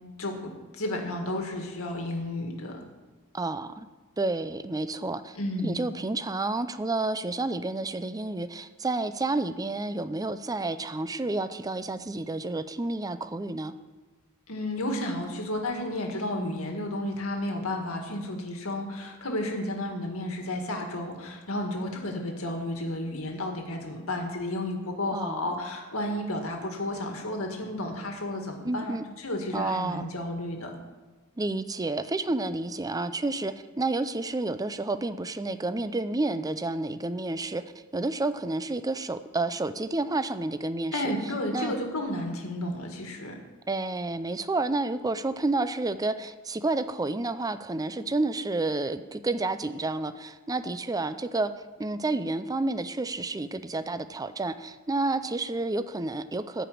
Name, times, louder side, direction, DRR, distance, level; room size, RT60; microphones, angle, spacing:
voice 1, 0.2-2.8 5.4-5.8 14.5-30.8 40.9-43.4, left 1 dB, 80° left, 2 dB, 2.0 m, -32 dB
voice 2, 3.3-3.9 4.2-5.4 5.6-13.7 25.1-25.5 28.6-29.0 29.5-30.1 31.4-37.6 37.9-41.7 43.7-51.5 51.8-56.7, right 2 dB, 15° right, 11 dB, 0.5 m, -30 dB
14.5 x 5.1 x 9.3 m, 1.2 s
head